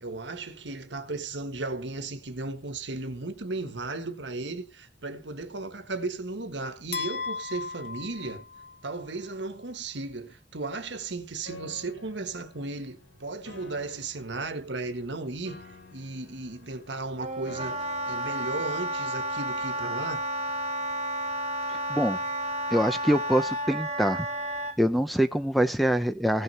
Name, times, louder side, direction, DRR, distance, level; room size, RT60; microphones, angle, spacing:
voice 1, 0.0-8.4 8.8-15.6 15.9-20.3, right 3 dB, 70° right, 1.5 m, -35 dB
sound 1, 6.9-9.1, left 5 dB, 55° left, 1.2 m, -36 dB
Piano, 11.5-19.4, left 2 dB, 85° left, 3.4 m, -51 dB
Wind instrument woodwind instrument, 17.2-24.8, right 1 dB, 30° right, 1.7 m, -31 dB
voice 2, 21.7-22.2 22.7-24.3 24.8-26.4, equal, ahead, 0.6 m, -25 dB
16.5 x 6.4 x 4.2 m
head